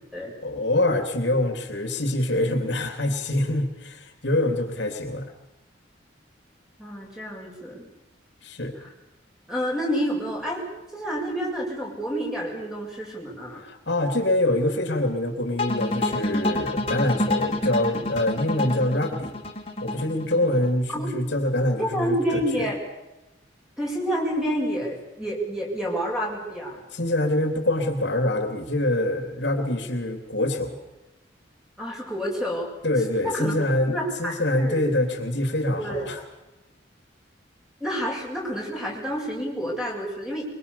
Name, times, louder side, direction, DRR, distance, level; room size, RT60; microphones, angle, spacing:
voice 1, 0.4-5.3 8.4-8.8 13.5-19.4 19.8-22.7 26.9-30.7 32.8-36.2, left 1 dB, 65° left, 6 dB, 3.2 m, -25 dB
voice 2, 6.8-7.9 8.8-8.9 9.5-10.6 10.9-13.6 20.9-21.1 21.8-22.8 23.8-26.8 31.8-32.7 33.2-33.6 33.8-34.8 35.8-36.1 37.8-40.4, equal, 5° right, -2 dB, 7.2 m, -29 dB
sound 1, 15.6-20.7, left 1 dB, 30° left, 3.6 m, -27 dB
24.0 x 23.5 x 7.1 m, 0.98 s
head